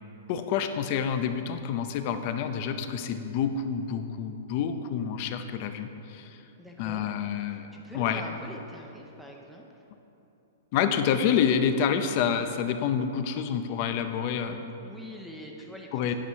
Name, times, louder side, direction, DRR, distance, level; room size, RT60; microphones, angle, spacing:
voice 1, 0.3-6.4 6.8-7.7 7.9-8.2 10.7-14.6 15.9-16.1, left 7 dB, 40° left, 8 dB, 0.6 m, -28 dB
voice 2, 6.6-7.1 7.5-9.9 14.8-16.1, equal, ahead, -1 dB, 0.7 m, -44 dB
10.0 x 6.2 x 5.6 m, 2.9 s
hypercardioid pair, 160°, 0 cm